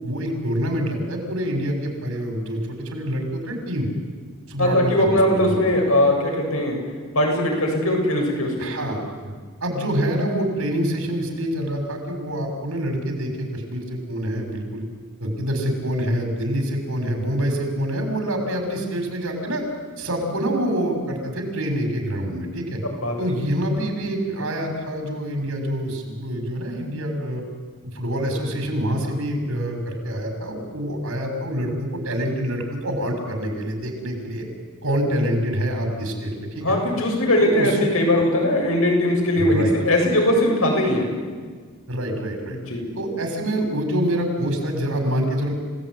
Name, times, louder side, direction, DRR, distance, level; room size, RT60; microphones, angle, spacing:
voice 1, 0.0-3.9 4.5-5.1 5.4-5.7 8.6-9.4 9.6-14.8 15.2-19.6 20.0-22.8 23.2-27.4 27.8-34.4 34.8-36.7 37.4-37.8 39.4-39.7 41.9-42.6 42.9-45.5, equal, 80° right, 3 dB, 6.3 m, -26 dB
voice 2, 4.6-6.8 7.1-8.7 23.0-23.3 36.6-41.1 42.5-42.8, left 1 dB, 80° left, 1 dB, 7.6 m, -20 dB
30.0 x 18.0 x 9.7 m, 1.5 s
head